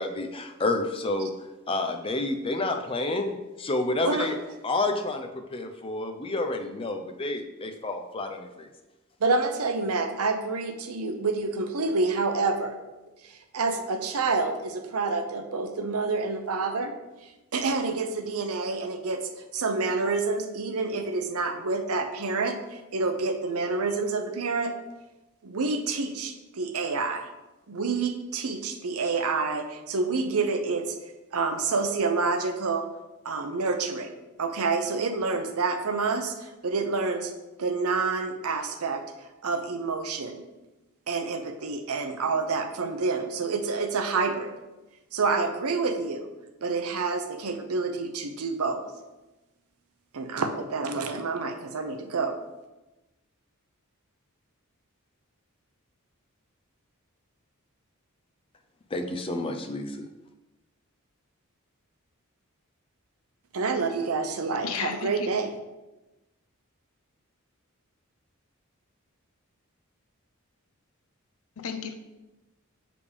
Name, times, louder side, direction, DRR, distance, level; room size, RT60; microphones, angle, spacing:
voice 1, 0.0-1.3 1.7-4.4 4.6-8.7 58.9-60.1, left 2 dB, 25° left, 6 dB, 0.5 m, -29 dB
voice 2, 9.2-12.8 13.2-16.9 17.5-24.8 25.4-27.3 27.7-32.9 33.2-34.1 34.4-37.3 37.6-39.0 39.4-40.4 41.1-44.5 45.1-46.3 46.6-48.8 50.1-52.3 63.5-65.5, right 4 dB, 80° right, 7 dB, 0.7 m, -28 dB
voice 3, 64.6-65.3 71.6-72.0, left 6 dB, 70° left, 7 dB, 0.6 m, -33 dB
6.8 x 5.1 x 3.3 m, 1.1 s
head